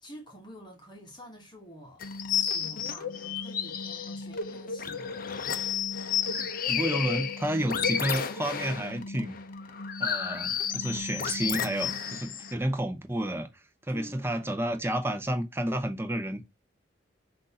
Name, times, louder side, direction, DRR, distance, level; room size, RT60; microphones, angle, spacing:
voice 1, 0.0-5.2 13.9-14.5, equal, 25° left, 1.1 m, -48 dB
sound 1, 2.0-12.5, left 7 dB, 45° left, 0.6 m, -32 dB
voice 2, 6.3-9.4 10.0-13.5 13.9-16.4, right 1 dB, 10° right, 0.7 m, -31 dB
6.1 x 2.6 x 2.7 m
head